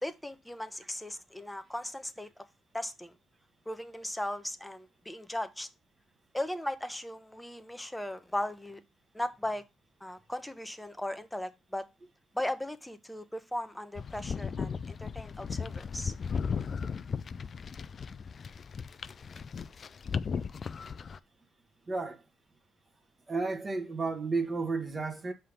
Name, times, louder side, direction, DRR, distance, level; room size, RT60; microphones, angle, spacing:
voice 1, 0.0-2.3 2.7-3.1 3.7-5.7 6.3-8.8 9.1-9.6 10.0-11.9 12.3-16.1, left 1 dB, 5° left, 0.7 m, -37 dB
sound 1, 14.0-21.2, left 6 dB, 45° left, 0.3 m, -36 dB
voice 2, 21.9-22.2 23.3-25.3, right 3 dB, 30° right, 1.0 m, -32 dB
5.6 x 3.4 x 5.5 m
cardioid pair, 90°, 0 cm